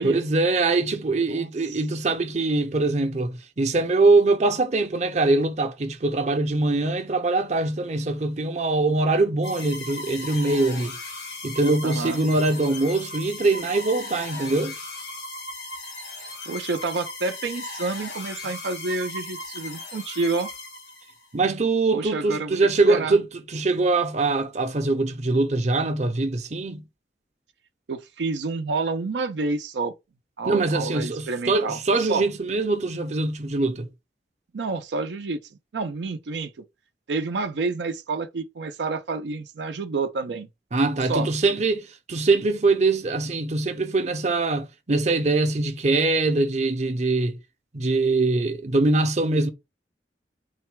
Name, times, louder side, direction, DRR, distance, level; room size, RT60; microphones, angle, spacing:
voice 1, 0.0-10.9 11.4-14.7 21.3-26.8 30.5-33.9 40.7-47.4 47.7-49.5, right 3 dB, 40° right, 0.6 m, -23 dB
voice 2, 1.3-1.8 11.8-12.3 16.5-20.5 21.9-22.6 22.9-23.2 27.9-29.9 30.4-32.3 34.5-35.4 35.7-36.5 37.1-40.5 41.1-41.3, right 3 dB, 80° right, 0.5 m, -29 dB
sound 1, 9.4-21.3, left 2 dB, 80° left, 1.2 m, -37 dB
4.0 x 2.2 x 4.4 m
head